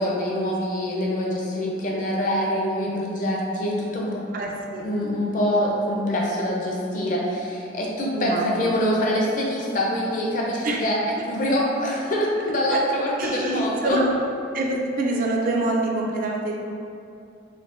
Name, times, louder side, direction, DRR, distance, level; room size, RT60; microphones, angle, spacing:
voice 1, 0.0-4.2 4.8-11.0 11.2-14.0, equal, 45° left, -3 dB, 0.5 m, -25 dB
voice 2, 4.3-4.9 8.1-8.8 10.6-10.8 12.7-12.8 13.2-14.1 14.5-16.6, right 2 dB, 45° right, -1 dB, 0.3 m, -26 dB
4.5 x 2.1 x 2.4 m, 2.6 s
head